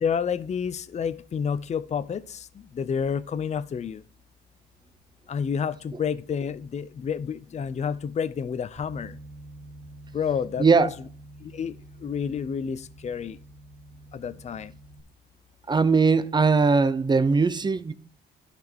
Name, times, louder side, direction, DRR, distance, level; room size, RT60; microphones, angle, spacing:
voice 1, 0.0-2.5 2.7-4.0 5.3-9.2 10.1-10.9 11.4-11.7 12.0-13.4 14.1-14.7, left 7 dB, 35° left, 0.5 m, -29 dB
Bass guitar, 8.8-15.0, right 1 dB, 55° right, 3.2 m, -47 dB
voice 2, 10.6-10.9 15.7-17.9, right 4 dB, 20° right, 0.7 m, -20 dB
11.5 x 4.3 x 4.4 m
cardioid pair, 90°, 20 cm